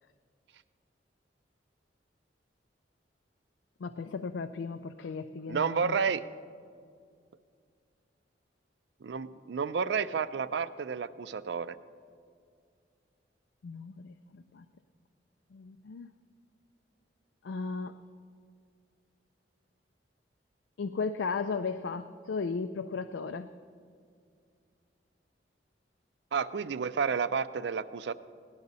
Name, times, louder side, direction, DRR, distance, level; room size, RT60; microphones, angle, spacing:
voice 1, 3.8-6.0 13.6-14.6 15.5-16.1 17.4-18.0 20.8-23.5, left 4 dB, 85° left, 8 dB, 0.4 m, -36 dB
voice 2, 5.5-6.2 9.0-11.8 26.3-28.1, right 6 dB, 70° right, 14 dB, 0.4 m, -31 dB
17.5 x 10.5 x 4.1 m, 2.2 s
head